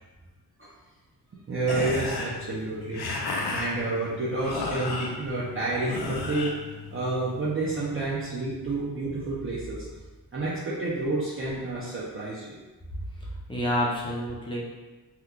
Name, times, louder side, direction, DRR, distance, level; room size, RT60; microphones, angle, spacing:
voice 1, 1.5-3.0 3.5-6.5 6.9-9.9 10.3-12.6, right 2 dB, 35° right, -7 dB, 0.5 m, -29 dB
sound 1, 1.6-7.5, left 3 dB, 80° left, 0.6 m, -34 dB
voice 2, 13.2-14.6, equal, 15° left, -4 dB, 0.5 m, -29 dB
2.9 x 2.2 x 3.6 m, 1.2 s
wide cardioid pair, 160°, 38 cm